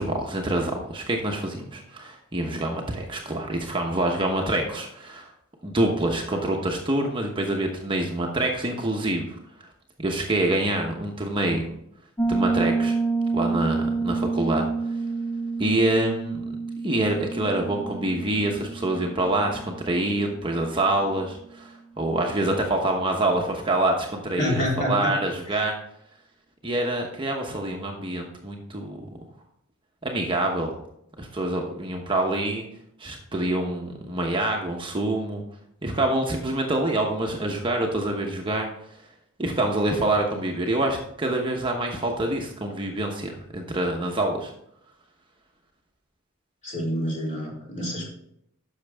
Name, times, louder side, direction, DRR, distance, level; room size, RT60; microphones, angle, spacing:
voice 1, 0.0-5.3 5.6-9.7 10.0-11.7 12.2-13.0 13.3-14.7 15.6-16.4 16.8-25.7 26.6-29.0 30.0-30.8 31.2-32.7 33.0-35.4 35.8-38.7 39.4-44.5, right 1 dB, 25° right, 1 dB, 1.0 m, -26 dB
Piano, 12.2-20.7, right 4 dB, 10° left, 0.5 m, -28 dB
voice 2, 24.4-25.1 25.5-25.6 46.6-48.1, equal, 35° left, -3 dB, 3.5 m, -27 dB
10.5 x 6.5 x 3.5 m, 0.72 s
head